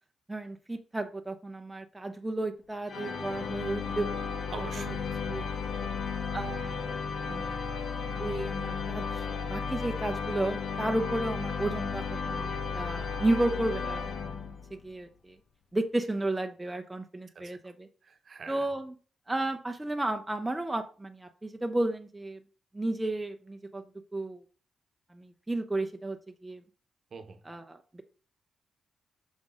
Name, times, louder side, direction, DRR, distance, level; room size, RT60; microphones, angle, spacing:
voice 1, 0.3-4.2 4.5-4.9 5.2-5.5 6.3-6.8 7.3-7.6 8.2-14.1 14.7-15.4 15.7-17.9 18.5-18.9 19.3-22.4 22.7-23.8 24.1-24.4 25.1-26.6 27.5-28.0, right 2 dB, 10° right, 0.6 m, -33 dB
sound 1, 2.9-14.8, left 5 dB, 55° left, 0.8 m, -34 dB
voice 2, 4.5-5.2 5.8-6.1 17.3-17.7 18.0-18.7 27.1-27.4, right 5 dB, 50° right, 1.0 m, -45 dB
6.1 x 5.7 x 3.7 m
cardioid pair, 105°, 0 cm